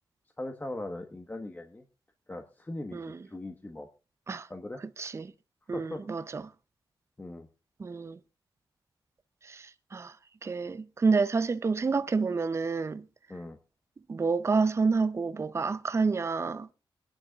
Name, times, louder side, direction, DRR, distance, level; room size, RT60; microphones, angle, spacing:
voice 1, 0.4-1.8 2.3-3.9 4.5-4.8 5.7-6.0 7.2-7.5 13.3-13.6, left 2 dB, 20° left, 1.3 m, -39 dB
voice 2, 2.9-3.3 4.3-4.5 4.8-5.3 5.7-6.5 7.8-8.2 9.4-10.2 10.4-13.1 14.1-16.7, right 4 dB, 30° right, 0.6 m, -29 dB
24.0 x 10.5 x 2.4 m
wide cardioid pair, 105°, 9 cm